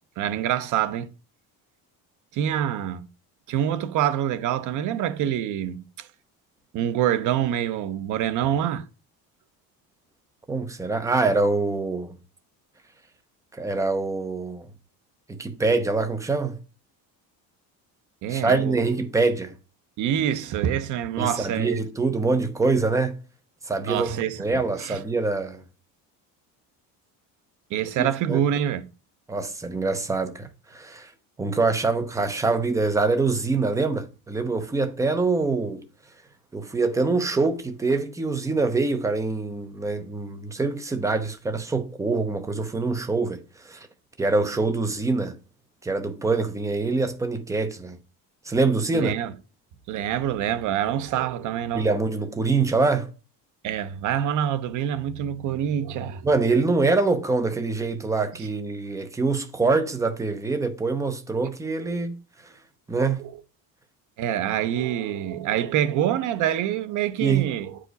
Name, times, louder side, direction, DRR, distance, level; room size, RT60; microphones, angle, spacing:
voice 1, 0.2-1.1 2.3-3.1 3.5-6.1 6.7-8.8 18.2-18.9 20.0-21.8 23.8-25.0 27.7-28.8 48.9-49.3 49.9-51.9 53.6-56.3 58.4-58.5 61.8-61.9 63.2-63.4 64.2-67.8, right 10 dB, 55° right, 0.8 m, -26 dB
voice 2, 10.5-12.1 13.5-14.7 15.3-16.6 18.3-19.5 21.2-23.2 23.7-25.6 28.0-28.4 29.3-31.1 31.4-35.8 36.5-43.9 44.2-45.3 45.8-48.0 48.5-49.1 51.7-53.1 56.2-62.2 62.9-63.2 67.2-67.5, right 3 dB, 10° right, 0.6 m, -24 dB
8.8 x 5.0 x 4.0 m
cardioid pair, 170°, 36 cm